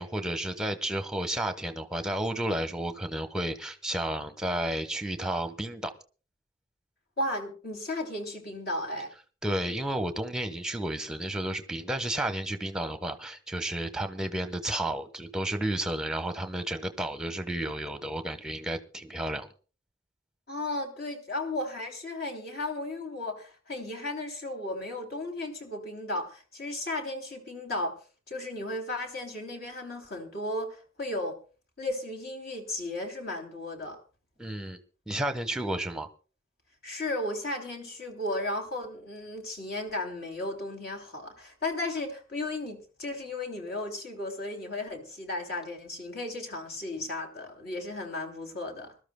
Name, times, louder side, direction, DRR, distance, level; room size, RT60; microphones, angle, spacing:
voice 1, 0.0-5.9 9.4-19.5 34.4-34.8 35.1-36.1, right 1 dB, 5° right, 8 dB, 1.0 m, -32 dB
voice 2, 7.2-9.1 20.5-28.0 28.3-31.4 31.8-34.0 36.8-48.9, left 2 dB, 50° left, 4 dB, 3.1 m, -35 dB
25.0 x 13.0 x 2.2 m, 0.36 s
head